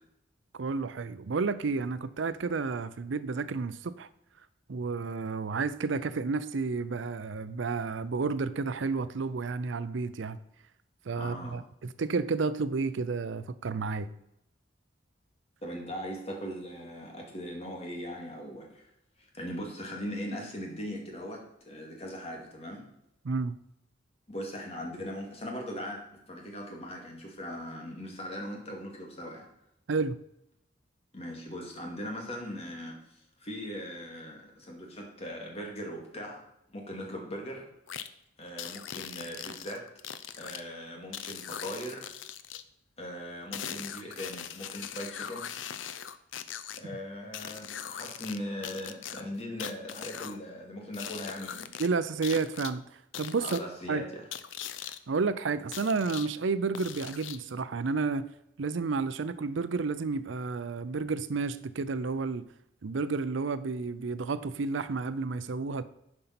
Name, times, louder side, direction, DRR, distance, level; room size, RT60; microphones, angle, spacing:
voice 1, 0.5-4.1 4.7-10.4 11.1-14.1 23.2-23.6 29.9-30.2 51.8-52.8 53.2-53.6 53.9-54.0 55.1-58.3 58.6-62.5 62.8-65.8, right 4 dB, 80° right, 14 dB, 0.5 m, -31 dB
voice 2, 11.2-11.6 15.6-18.9 19.2-22.8 24.3-26.0 26.3-29.5 31.1-36.4 36.7-37.7 38.4-39.8 40.4-42.1 43.0-45.5 46.8-51.7 53.4-54.3, equal, 35° left, 0 dB, 2.2 m, -39 dB
sound 1, 37.9-38.1 38.6-40.6 41.1-42.6 43.5-46.8 47.3-48.4 48.6-50.4 50.9-51.9 52.2-52.7 53.1-53.6 54.3-55.0 55.7-56.3 56.7-57.5, left 9 dB, 90° left, 0.6 m, -40 dB
11.0 x 5.4 x 5.9 m, 0.79 s
head